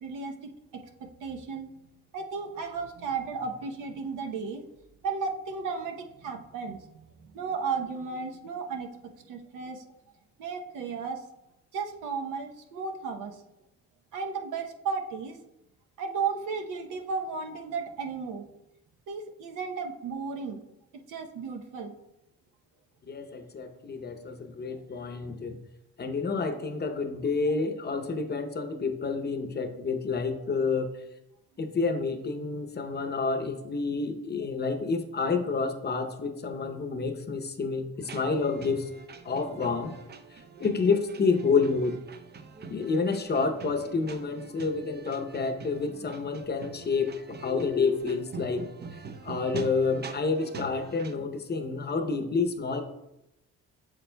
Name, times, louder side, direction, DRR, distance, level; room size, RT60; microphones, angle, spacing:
voice 1, 0.0-1.7 2.1-4.6 5.0-9.9 10.4-11.2 11.7-13.4 14.1-15.4 16.0-18.5 19.1-20.6 21.1-22.0, right 5 dB, 85° right, 4 dB, 0.9 m, -34 dB
voice 2, 23.1-25.6 26.0-31.0 31.6-38.9 39.2-39.9 40.6-42.0 42.7-48.7 49.2-52.8, left 4 dB, 35° left, 7 dB, 0.7 m, -29 dB
sound 1, 38.0-51.2, right 5 dB, 35° right, 0.6 m, -44 dB
6.9 x 6.9 x 2.2 m, 0.88 s
cardioid pair, 90°, 30 cm